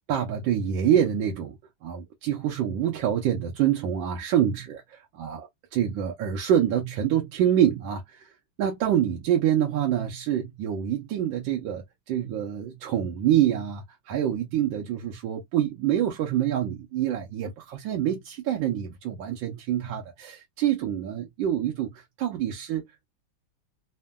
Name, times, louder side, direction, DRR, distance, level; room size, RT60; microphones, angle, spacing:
voice 1, 0.1-1.6 1.8-8.3 8.6-22.8, right 10 dB, 80° right, 1.4 m, -26 dB
3.5 x 2.1 x 2.2 m
omnidirectional pair, 2.1 m